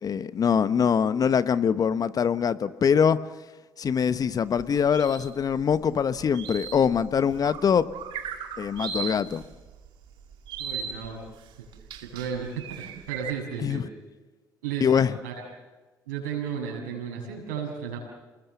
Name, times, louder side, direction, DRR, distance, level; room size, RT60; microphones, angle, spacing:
voice 1, 0.0-3.2 3.8-7.9 8.6-9.4 13.6-13.8 14.8-15.1, left 7 dB, 40° left, 1.0 m, -23 dB
sound 1, 4.2-13.3, right 7 dB, 65° right, 2.2 m, -38 dB
voice 2, 10.6-11.3 12.0-13.8 14.6-15.4 16.1-18.0, right 7 dB, 85° right, 7.0 m, -34 dB
28.0 x 21.0 x 7.0 m
hypercardioid pair, 55°, 9 cm